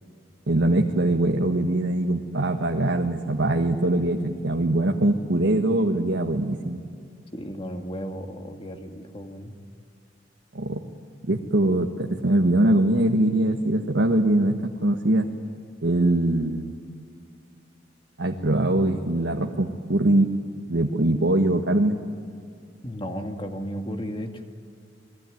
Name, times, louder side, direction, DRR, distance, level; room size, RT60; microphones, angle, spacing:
voice 1, 0.5-6.8 10.5-10.8 11.2-15.3 15.8-16.7 18.2-20.3 20.7-22.0, right 1 dB, 75° right, 3 dB, 1.5 m, -22 dB
voice 2, 7.3-9.5 22.8-24.3, equal, 30° left, 4 dB, 2.2 m, -34 dB
28.0 x 22.0 x 9.4 m, 2.3 s
head